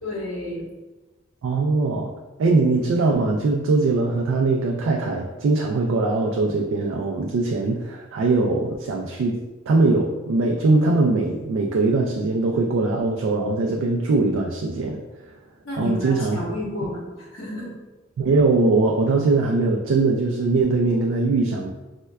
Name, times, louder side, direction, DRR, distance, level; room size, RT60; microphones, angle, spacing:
voice 1, 0.0-0.6 15.6-17.7, left 1 dB, 80° left, -6 dB, 1.1 m, -31 dB
voice 2, 1.4-2.1 2.4-9.4 9.7-15.0 15.8-16.4 18.2-21.7, right 3 dB, 80° right, 1 dB, 0.3 m, -21 dB
4.4 x 2.1 x 2.2 m, 1.2 s
head